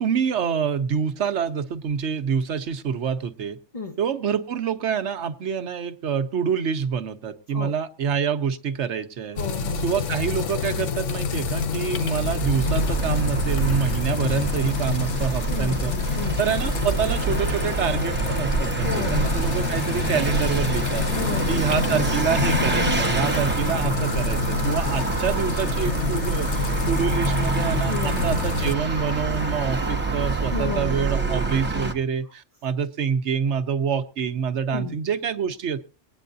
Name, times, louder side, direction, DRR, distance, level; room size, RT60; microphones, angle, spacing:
voice 1, 0.0-3.6 4.0-9.4 9.8-15.9 16.4-21.1 21.5-35.8, right 7 dB, 70° right, 8 dB, 1.0 m, -26 dB
sound 1, 9.4-28.7, left 5 dB, 75° left, 1.1 m, -28 dB
voice 2, 9.4-10.0 15.5-16.4 18.8-19.3 21.1-22.0 27.9-28.3 30.5-31.0 34.7-35.0, left 4 dB, 35° left, 4 dB, 0.8 m, -33 dB
Vehicle, 12.1-31.9, right 3 dB, 10° right, 0.9 m, -26 dB
23.5 x 9.2 x 2.6 m, 0.34 s
omnidirectional pair, 1.3 m